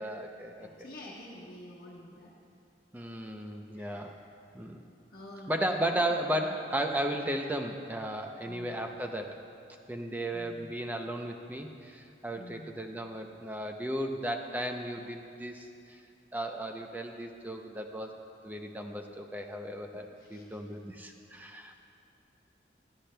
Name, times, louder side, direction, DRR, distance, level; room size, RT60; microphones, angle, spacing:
voice 1, 0.0-0.9 2.9-4.2 4.5-4.8 5.5-9.4 9.9-16.0 16.3-18.2 18.4-21.8, right 1 dB, 10° right, 4 dB, 0.5 m, -35 dB
voice 2, 0.6-2.3 3.7-4.2 5.1-6.0 6.3-6.6 8.4-8.8 10.3-10.8 12.3-12.7 20.2-20.6, left 1 dB, 55° left, -5 dB, 1.2 m, -49 dB
21.5 x 12.0 x 2.2 m, 2.5 s
head